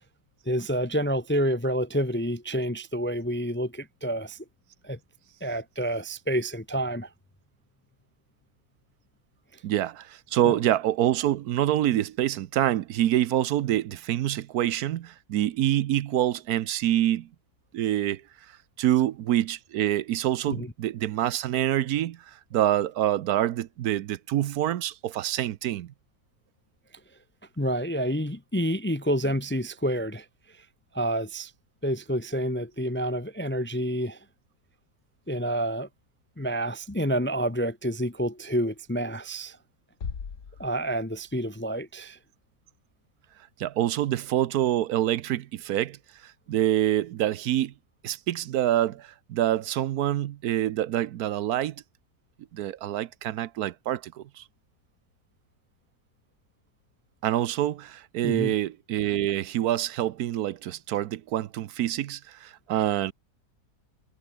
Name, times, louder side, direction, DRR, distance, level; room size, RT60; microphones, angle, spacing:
voice 1, 0.5-4.4 4.8-5.0 5.4-7.1 9.5-9.6 10.4-10.6 20.5-20.7 27.6-30.3 30.6-30.7 30.9-31.5 31.8-34.2 35.3-35.9 36.4-39.6 40.6-42.2 58.2-58.5, equal, 10° left, 0.5 m, -28 dB
voice 2, 9.6-17.3 17.7-18.2 18.8-25.9 43.6-46.0 46.2-47.7 48.0-51.8 52.5-54.4 57.2-63.1, right 12 dB, 75° right, 1.2 m, -26 dB
sound 1, 40.0-41.9, left 6 dB, 55° left, 2.0 m, -40 dB
omnidirectional pair, 1.7 m